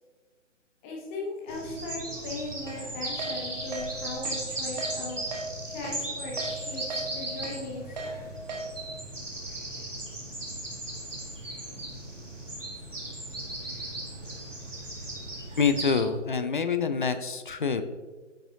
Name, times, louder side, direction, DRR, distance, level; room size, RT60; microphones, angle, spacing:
voice 1, 0.8-5.2 5.7-8.1, left 2 dB, 10° left, -2 dB, 0.8 m, -38 dB
sound 1, 1.5-16.0, right 1 dB, 80° right, 2.0 m, -37 dB
Keyboard (musical), 2.7-2.8 3.2-3.3 3.7-3.9 4.3-4.4 4.8-4.9 5.3-5.5 5.8-6.0 6.4-6.5 6.9-7.0 7.4-7.6 8.0-8.1 8.5-8.6, right 3 dB, 35° right, 1.1 m, -36 dB
voice 2, 15.6-17.8, left 5 dB, 45° left, 10 dB, 0.5 m, -26 dB
9.0 x 6.9 x 2.7 m, 1.4 s
figure-of-eight pair, 135°, 37 cm